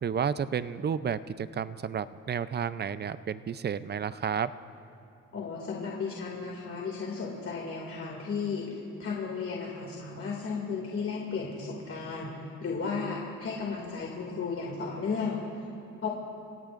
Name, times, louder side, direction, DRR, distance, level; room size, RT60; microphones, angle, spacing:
voice 1, 0.0-4.5, right 7 dB, 35° right, 14 dB, 0.5 m, -31 dB
voice 2, 5.3-15.4 16.0-16.1, left 5 dB, 45° left, -2 dB, 2.4 m, -34 dB
28.0 x 17.0 x 2.6 m, 2.8 s
cardioid pair, 90°, 30 cm